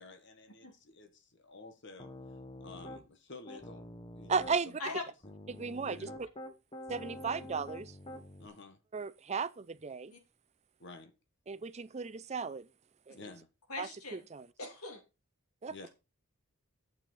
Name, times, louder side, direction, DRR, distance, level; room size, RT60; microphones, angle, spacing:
voice 1, 0.0-2.1 2.6-3.9 4.1-5.0 5.8-6.2 8.4-8.8 10.8-11.1 13.1-13.5 15.7-15.9, left 3 dB, 55° left, 1.5 m, -51 dB
Piano, 2.0-3.0 3.5-4.6 5.2-8.5, left 1 dB, 25° left, 1.1 m, -47 dB
voice 2, 4.3-4.7 5.5-6.1 6.9-7.9 8.9-10.1 11.5-12.7 13.1-13.2 13.8-14.5 15.6-15.7, right 5 dB, 30° right, 0.5 m, -35 dB
voice 3, 13.7-14.2 14.6-15.0, left 2 dB, 90° left, 3.0 m, -40 dB
9.2 x 7.1 x 5.4 m
head